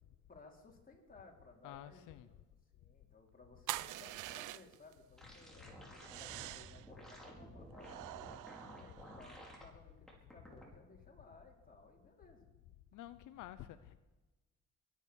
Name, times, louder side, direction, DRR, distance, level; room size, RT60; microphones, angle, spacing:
voice 1, 0.3-2.4 2.7-12.4, left 3 dB, 30° left, 0 dB, 4.4 m, -60 dB
voice 2, 1.6-2.3 12.9-14.0, left 12 dB, 85° left, 12 dB, 0.8 m, -50 dB
sound 1, 3.7-4.9 6.0-6.9 7.8-9.5, right 16 dB, 90° right, 0.6 m, -45 dB
sound 2, 5.2-9.6 10.1-10.6, equal, ahead, 5.0 m, -53 dB
22.0 x 9.6 x 6.5 m, 1.1 s
cardioid pair, 90°, 30 cm